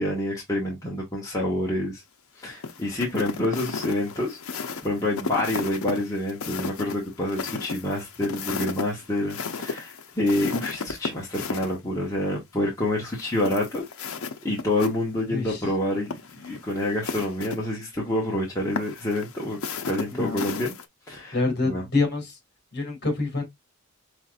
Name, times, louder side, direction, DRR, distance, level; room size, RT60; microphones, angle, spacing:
voice 1, 0.0-2.0 2.4-4.4 4.8-13.8 14.4-19.6 19.8-20.7 21.1-21.4 21.6-21.8, left 1 dB, 15° left, 1.4 m, -27 dB
sound 1, 2.6-11.7 13.1-14.9 15.2-15.3 16.0-17.6 18.8-20.9, left 4 dB, 75° left, 0.7 m, -34 dB
voice 2, 15.3-15.6 20.1-20.4 21.3-22.4 22.7-23.5, left 3 dB, 50° left, 2.1 m, -26 dB
5.7 x 3.1 x 2.4 m
head